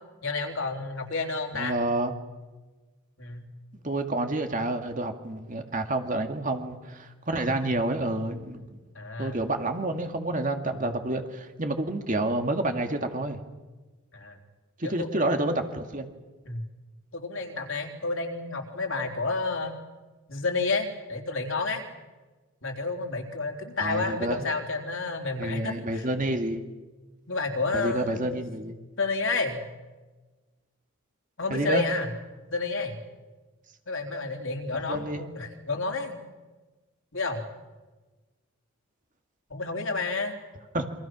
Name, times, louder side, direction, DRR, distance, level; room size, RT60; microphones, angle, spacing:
voice 1, 0.2-1.8 3.2-3.5 7.6-7.7 8.9-9.4 10.8-10.9 14.1-14.4 14.8-15.7 16.5-16.6 17.1-19.8 20.3-21.8 22.6-26.1 27.3-28.4 29.0-29.6 31.4-32.1 32.5-33.0 33.9-36.2 37.1-37.4 39.5-40.3, left 3 dB, 60° left, 2 dB, 3.7 m, -30 dB
voice 2, 1.5-2.1 3.8-8.8 9.2-13.4 14.8-16.1 23.8-24.4 25.4-26.6 27.7-28.7 31.5-31.8 34.9-35.2 40.7-40.9, right 2 dB, 35° right, 5 dB, 2.1 m, -29 dB
28.5 x 24.0 x 6.2 m, 1.2 s
head